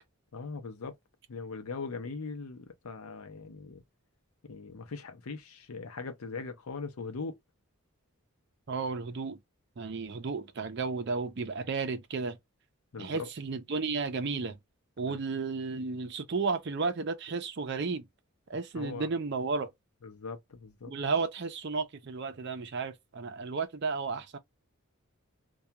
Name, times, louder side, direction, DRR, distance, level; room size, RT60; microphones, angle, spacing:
voice 1, 0.3-0.9 1.3-3.8 4.4-7.4 12.9-13.3 15.0-15.2 18.7-19.1 20.0-20.9, left 4 dB, 80° left, 0.6 m, -40 dB
voice 2, 8.7-9.4 9.8-12.4 13.0-14.6 15.0-18.0 18.5-19.7 20.8-24.4, right 4 dB, 50° right, 0.5 m, -33 dB
2.3 x 2.3 x 2.8 m
head